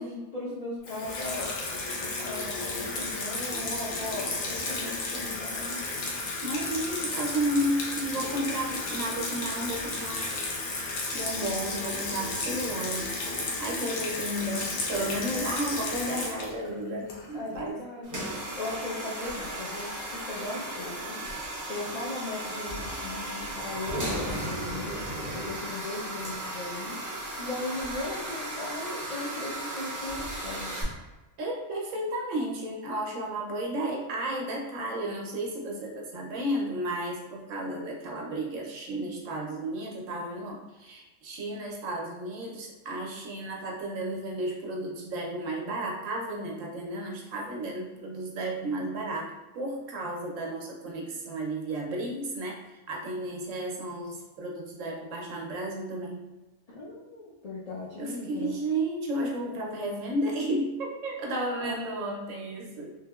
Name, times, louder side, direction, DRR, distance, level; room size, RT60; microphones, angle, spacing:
voice 1, 0.0-1.6 2.0-5.8 17.3-21.2 21.6-25.0 25.3-27.0 27.4-30.7 56.7-58.6 61.6-61.9, left 2 dB, 60° left, -7 dB, 0.4 m, -38 dB
Water tap faucet / Sink (filling or washing), 0.8-17.6, left 3 dB, 75° left, 1.1 m, -33 dB
voice 2, 6.4-10.8 11.1-13.3 13.6-17.8 31.4-56.3 58.0-62.9, right 1 dB, 70° right, -1 dB, 1.0 m, -33 dB
sound 1, 18.0-30.8, right 1 dB, 20° right, 0.5 m, -35 dB
3.3 x 2.7 x 2.3 m, 1.1 s
omnidirectional pair, 1.4 m